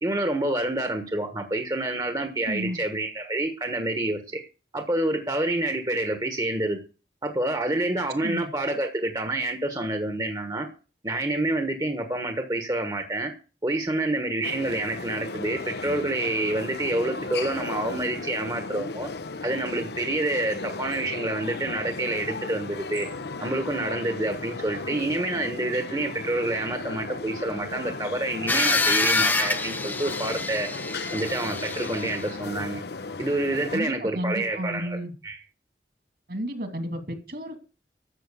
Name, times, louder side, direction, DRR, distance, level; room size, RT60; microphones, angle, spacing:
voice 1, 0.0-4.4 4.7-6.8 7.2-10.7 11.0-13.3 13.6-19.1 19.4-23.1 23.4-30.7 31.1-32.8 33.2-35.0 35.2-35.4, right 2 dB, 20° right, 6 dB, 1.2 m, -28 dB
voice 2, 2.5-2.8 8.2-8.5 33.7-35.1 36.3-37.6, equal, 60° right, 7 dB, 2.7 m, -32 dB
sound 1, 14.4-33.8, left 3 dB, 70° left, 0.8 m, -36 dB
sound 2, 28.5-32.3, left 3 dB, 10° left, 0.7 m, -26 dB
12.5 x 7.5 x 6.9 m, 0.36 s
head